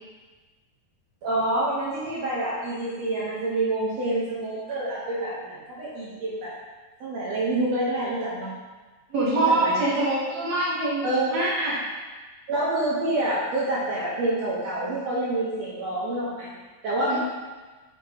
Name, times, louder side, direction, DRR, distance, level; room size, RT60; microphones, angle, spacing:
voice 1, 1.2-6.5 7.0-8.5 9.3-9.8 11.0-11.3 12.5-16.5 16.8-17.2, right 1 dB, 65° right, -7 dB, 1.8 m, -27 dB
voice 2, 9.1-11.7 17.1-17.2, right 2 dB, 80° right, -8 dB, 0.8 m, -24 dB
6.6 x 6.6 x 2.9 m, 1.3 s
omnidirectional pair, 4.0 m